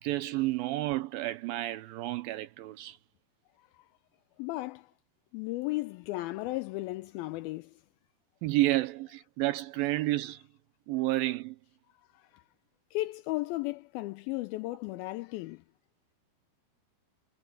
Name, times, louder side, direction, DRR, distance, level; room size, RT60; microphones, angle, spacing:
voice 1, 0.0-3.0 8.4-10.4 10.9-11.6, right 17 dB, 80° right, 2.2 m, -30 dB
voice 2, 4.4-4.9 5.3-7.8 12.1-12.4 12.9-15.6, left 19 dB, 85° left, 2.1 m, -35 dB
omnidirectional pair, 4.7 m